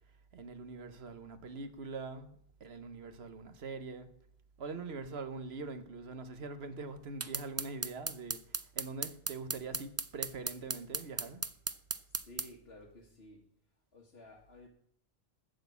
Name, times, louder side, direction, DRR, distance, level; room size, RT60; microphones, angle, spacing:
voice 1, 0.3-4.1 4.6-11.4, right 4 dB, 80° right, 1.3 m, -43 dB
sound 1, 7.2-12.5, right 3 dB, 25° right, 0.3 m, -36 dB
voice 2, 12.1-13.4 13.9-14.7, left 1 dB, 75° left, 1.8 m, -54 dB
11.5 x 6.4 x 8.2 m
omnidirectional pair, 1.0 m